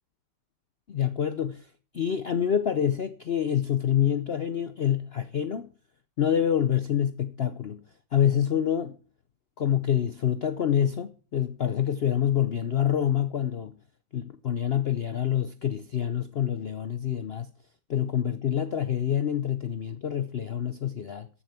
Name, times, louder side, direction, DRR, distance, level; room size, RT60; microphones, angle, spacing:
voice 1, 0.9-5.7 6.2-7.8 8.1-9.0 9.6-13.8 14.1-17.5 17.9-21.3, left 9 dB, 80° left, 0.5 m, -27 dB
14.5 x 7.1 x 5.8 m
omnidirectional pair, 2.0 m